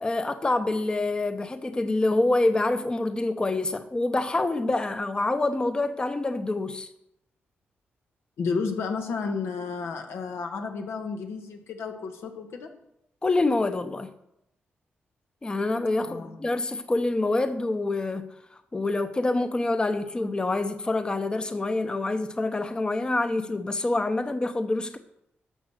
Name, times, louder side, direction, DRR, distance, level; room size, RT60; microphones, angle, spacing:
voice 1, 0.0-6.9 13.2-14.1 15.4-18.3 18.7-25.0, left 2 dB, 20° left, 0.7 m, -26 dB
voice 2, 8.4-12.7 16.0-16.4, left 5 dB, 90° left, 1.6 m, -32 dB
12.5 x 6.1 x 6.5 m
cardioid pair, 100°, 4 cm